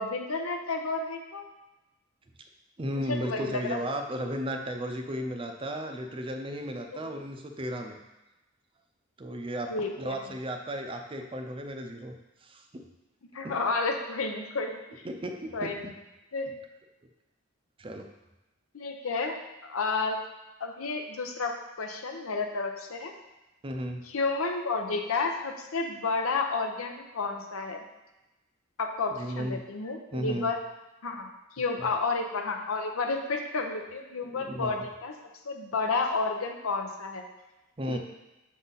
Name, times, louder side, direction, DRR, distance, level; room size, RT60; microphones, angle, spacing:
voice 1, 0.0-1.4 2.9-3.8 6.8-6.9 9.7-10.2 13.3-15.1 15.5-15.9 16.3-16.5 18.7-19.4 19.6-20.2 20.6-23.1 24.1-27.8 28.8-30.6 31.0-31.3 31.6-35.1 35.4-37.2 37.9-38.0, left 3 dB, 90° left, 4 dB, 0.8 m, -31 dB
voice 2, 2.8-8.0 9.2-12.1 12.4-12.8 13.4-13.5 15.0-15.9 17.8-18.1 23.6-24.0 29.1-29.6 30.1-30.5 34.4-34.9 37.8-38.0, equal, 25° right, 4 dB, 0.5 m, -34 dB
6.5 x 3.9 x 4.0 m, 1.0 s
head